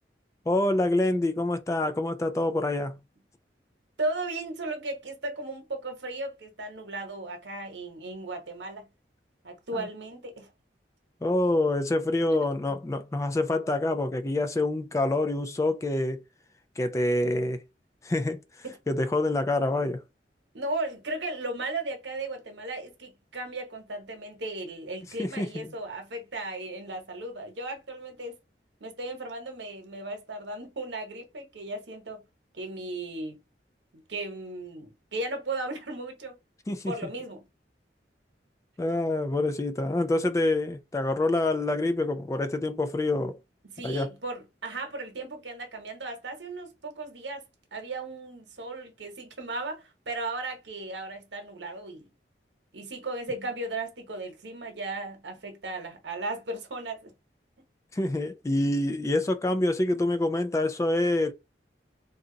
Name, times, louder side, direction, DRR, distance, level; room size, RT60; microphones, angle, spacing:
voice 1, 0.5-3.0 9.7-9.8 11.2-16.2 16.8-17.6 18.0-18.4 18.9-20.0 25.2-25.7 36.7-36.9 38.8-43.4 43.8-44.1 57.9-61.3, left 2 dB, 15° left, 0.3 m, -26 dB
voice 2, 4.0-8.9 9.4-10.5 12.3-12.7 18.6-18.8 20.5-28.4 28.8-32.2 32.5-33.4 33.9-36.4 36.9-37.4 43.6-47.4 47.7-52.1 52.7-57.1, right 2 dB, 85° right, 1.0 m, -36 dB
2.8 x 2.3 x 3.8 m
head